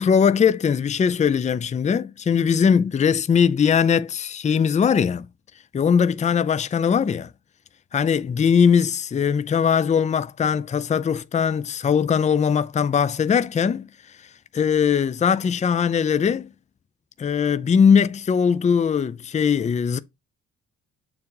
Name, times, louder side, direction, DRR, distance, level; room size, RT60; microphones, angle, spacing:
voice 1, 0.0-5.3 5.7-7.3 7.9-13.9 14.5-16.5 17.2-20.0, left 7 dB, 25° left, 0.4 m, -20 dB
6.9 x 2.5 x 5.3 m
cardioid pair, 90°, 30 cm